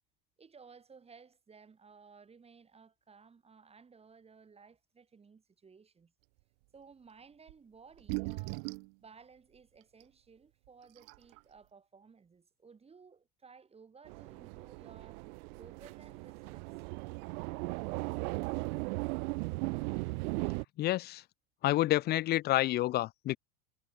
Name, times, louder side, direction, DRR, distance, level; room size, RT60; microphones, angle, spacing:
voice 1, 0.4-6.1 6.7-8.7 9.0-16.7, right 5 dB, 15° right, 6.6 m, -58 dB
sound 1, 7.5-7.6 7.9-8.9 10.0-10.1 10.7-10.8 11.0-11.4, right 32 dB, 55° right, 1.0 m, -38 dB
sound 2, 14.1-20.6, right 27 dB, 75° right, 0.6 m, -37 dB
voice 2, 20.8-21.2 21.6-23.4, left 16 dB, 25° left, 0.5 m, -29 dB
cardioid pair, 175°, 44 cm